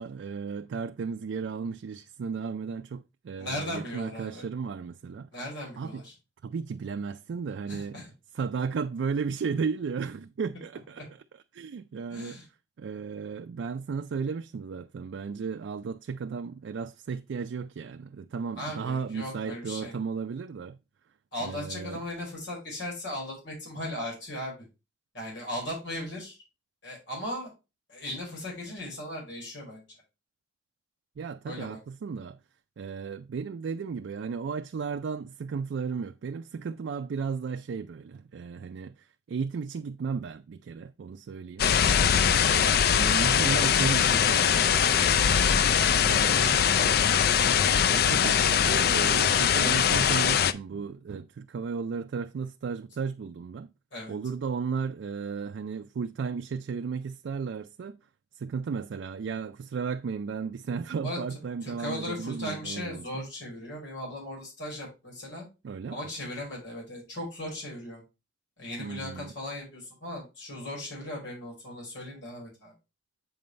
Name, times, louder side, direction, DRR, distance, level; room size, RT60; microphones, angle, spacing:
voice 1, 0.0-5.3 5.8-6.0 6.4-8.0 8.3-11.0 11.5-12.4 12.8-20.8 21.4-22.0 31.2-32.4 32.8-45.6 45.9-46.6 47.9-53.7 54.1-58.0 58.3-63.3 65.6-66.0 68.8-69.3, right 5 dB, 80° right, 0.4 m, -34 dB
voice 2, 3.4-4.5 5.3-6.1 7.7-8.1 12.1-12.4 18.6-20.0 21.3-24.6 25.1-26.4 26.8-27.5 27.9-29.8 31.4-31.8 46.1-47.1 53.9-54.1 61.0-61.2 61.6-65.4 65.9-68.0 68.6-72.7, left 1 dB, 80° left, 4.9 m, -37 dB
sound 1, 41.6-50.5, left 8 dB, 55° left, 0.4 m, -22 dB
7.8 x 5.3 x 3.1 m
head